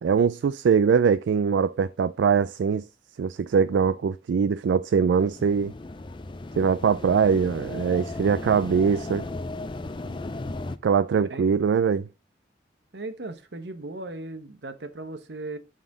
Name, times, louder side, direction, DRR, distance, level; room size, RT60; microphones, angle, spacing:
voice 1, 0.0-2.8 3.2-5.7 6.6-9.2 10.8-12.1, right 6 dB, 85° right, 0.3 m, -22 dB
sound 1, 5.1-10.8, left 2 dB, 25° left, 0.5 m, -36 dB
voice 2, 12.9-15.6, right 2 dB, 70° right, 1.0 m, -37 dB
11.0 x 4.1 x 3.8 m
head